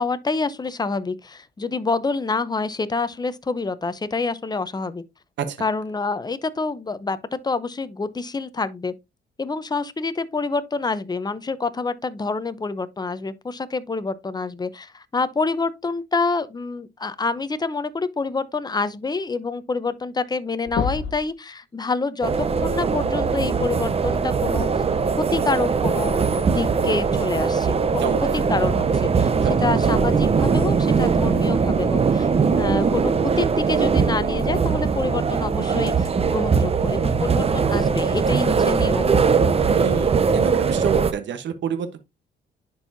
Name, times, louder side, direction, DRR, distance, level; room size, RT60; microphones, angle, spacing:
voice 1, 0.0-5.0 5.6-8.9 9.4-22.3 22.6-24.8 25.3-29.3 29.6-39.2, left 4 dB, 20° left, 0.7 m, -27 dB
sound 1, 20.1-20.4 20.6-21.3 23.0-23.1 25.0-25.1 26.0-26.1, left 6 dB, 70° left, 1.1 m, -28 dB
sound 2, 22.2-41.1, right 5 dB, 30° right, 0.7 m, -21 dB
voice 2, 39.7-42.0, right 7 dB, 65° right, 1.1 m, -28 dB
10.5 x 4.6 x 2.7 m
cardioid pair, 90°, 20 cm